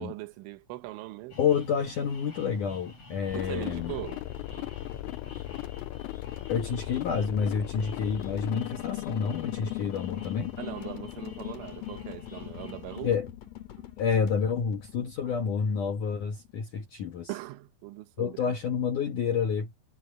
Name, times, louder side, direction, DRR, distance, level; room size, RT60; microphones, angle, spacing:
voice 1, 0.0-1.4 3.3-4.3 4.6-4.7 10.6-13.1 13.8-13.9 17.3-18.5, right 19 dB, 80° right, 3.2 m, -40 dB
sound 1, 1.3-13.1, left 2 dB, 30° left, 8.2 m, -50 dB
voice 2, 1.4-3.9 6.5-10.6 13.0-13.3 14.0-17.3 18.2-19.7, left 6 dB, 70° left, 1.9 m, -29 dB
sound 2, 3.3-16.6, left 19 dB, 90° left, 3.3 m, -38 dB
sound 3, 3.3-15.5, left 6 dB, 50° left, 3.2 m, -51 dB
omnidirectional pair, 5.8 m